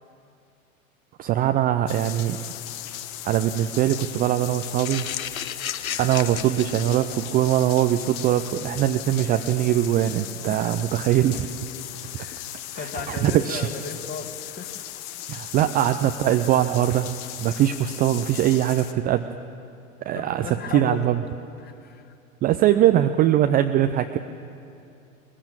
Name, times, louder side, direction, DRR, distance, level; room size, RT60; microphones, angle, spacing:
voice 1, 1.2-2.4 3.2-5.1 6.0-11.5 12.7-13.7 15.3-19.2 20.1-21.2 22.4-24.2, right 12 dB, 20° right, 8 dB, 0.5 m, -22 dB
sound 1, 1.9-18.9, left 12 dB, 45° left, 1.2 m, -37 dB
sound 2, 4.8-12.5, left 9 dB, 75° left, 0.9 m, -37 dB
voice 2, 12.1-12.5 12.8-14.8 20.1-21.1 21.6-22.1, left 6 dB, 25° left, 7 dB, 1.7 m, -36 dB
20.5 x 15.0 x 8.9 m, 2.6 s
figure-of-eight pair, 95°, 42 cm